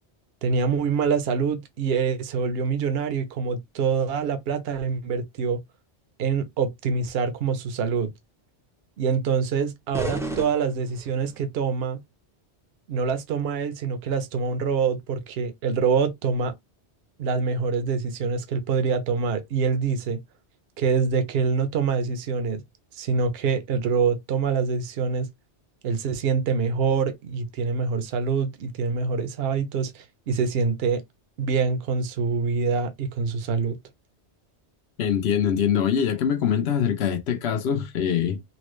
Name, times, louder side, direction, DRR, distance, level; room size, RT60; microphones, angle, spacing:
voice 1, 0.4-5.6 6.2-8.1 9.0-12.0 12.9-16.5 17.2-20.2 20.8-22.6 22.9-25.3 25.8-31.0 31.4-33.8, right 5 dB, 65° right, 0.8 m, -25 dB
sound 1, 9.9-11.4, right 1 dB, 5° right, 0.5 m, -33 dB
voice 2, 35.0-38.4, left 8 dB, 70° left, 1.0 m, -23 dB
4.1 x 2.1 x 3.1 m
omnidirectional pair, 1.1 m